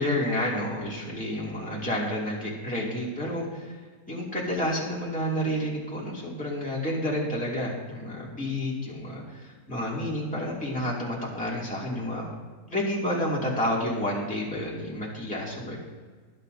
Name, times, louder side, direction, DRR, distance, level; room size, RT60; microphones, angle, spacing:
voice 1, 0.0-3.8 4.1-12.3 12.7-15.8, left 1 dB, 5° left, -5 dB, 2.3 m, -30 dB
20.5 x 8.8 x 2.7 m, 1.5 s
omnidirectional pair, 1.8 m